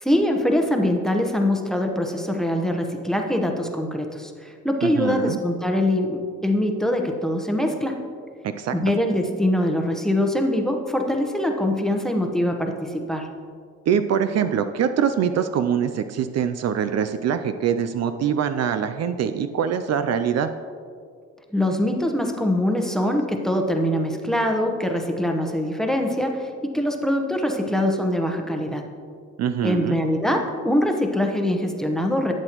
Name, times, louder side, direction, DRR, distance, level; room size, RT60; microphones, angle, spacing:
voice 1, 0.0-8.0 8.7-13.3 21.5-28.9 29.6-32.3, left 1 dB, ahead, 3 dB, 0.9 m, -23 dB
voice 2, 4.8-5.4 8.4-8.7 13.9-20.5 29.4-30.0, right 8 dB, 60° right, 9 dB, 0.5 m, -23 dB
11.5 x 7.9 x 3.0 m, 2.2 s
cardioid pair, 90°, 30 cm